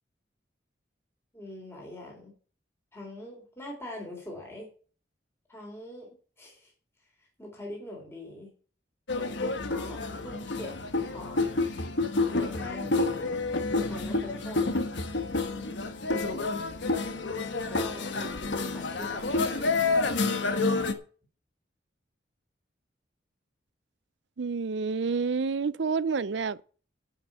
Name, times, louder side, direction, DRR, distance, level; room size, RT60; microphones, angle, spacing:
voice 1, 1.3-2.3 2.9-4.7 5.5-6.7 7.2-8.5 9.1-11.4 12.4-13.4 13.7-14.7 16.3-16.6 17.5-20.0, left 1 dB, 15° left, 3.6 m, -43 dB
sound 1, 9.1-20.9, left 3 dB, 75° left, 1.2 m, -29 dB
voice 2, 24.4-26.6, right 5 dB, 70° right, 0.5 m, -29 dB
11.0 x 5.9 x 7.4 m
head